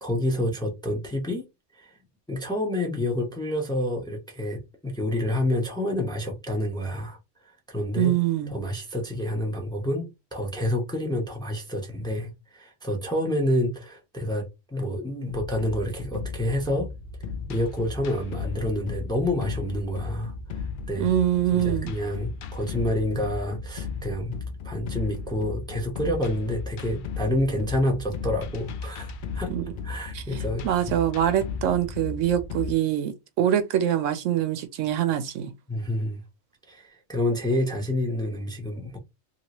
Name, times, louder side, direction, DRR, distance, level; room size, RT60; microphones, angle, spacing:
voice 1, 0.0-1.4 1.7-1.9 2.3-7.2 7.7-8.1 8.5-16.9 17.5-21.1 21.6-24.4 24.6-29.5 29.8-30.9 35.7-36.2 36.7-39.0, left 1 dB, 5° left, 0.7 m, -28 dB
voice 2, 8.0-8.5 21.0-21.9 29.5-29.6 30.1-30.2 30.6-35.5, right 11 dB, 75° right, 0.9 m, -24 dB
sound 1, 15.3-32.7, left 5 dB, 70° left, 0.5 m, -35 dB
2.9 x 2.8 x 2.9 m
omnidirectional pair, 1.4 m